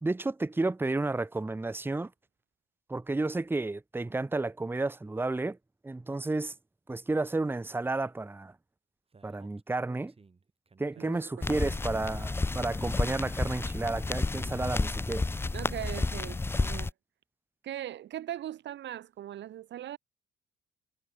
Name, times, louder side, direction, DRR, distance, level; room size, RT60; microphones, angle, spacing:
voice 1, 0.0-2.1 2.9-5.6 5.8-6.5 6.9-8.5 9.2-10.1 10.8-15.2, right 2 dB, 10° right, 0.8 m, -31 dB
Speech, 9.1-12.5, right 4 dB, 30° right, 4.7 m, -58 dB
voice 2, 11.0-11.6 15.5-16.9 17.6-20.0, right 12 dB, 65° right, 0.8 m, -40 dB
sound 1, 11.4-16.9, left 3 dB, 10° left, 0.4 m, -31 dB
cardioid pair, 90°, 20 cm